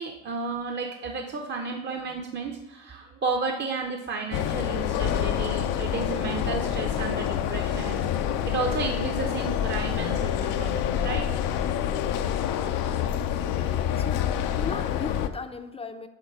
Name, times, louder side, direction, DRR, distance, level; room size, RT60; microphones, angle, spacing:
voice 1, 0.0-8.0 8.5-11.3, right 4 dB, 30° right, 3 dB, 0.8 m, -32 dB
sound 1, 4.3-15.3, left 9 dB, 65° left, 0.5 m, -27 dB
voice 2, 13.5-16.1, left 4 dB, 15° left, 8 dB, 0.6 m, -38 dB
6.6 x 3.5 x 4.6 m, 1.0 s
hypercardioid pair, 60°, 35 cm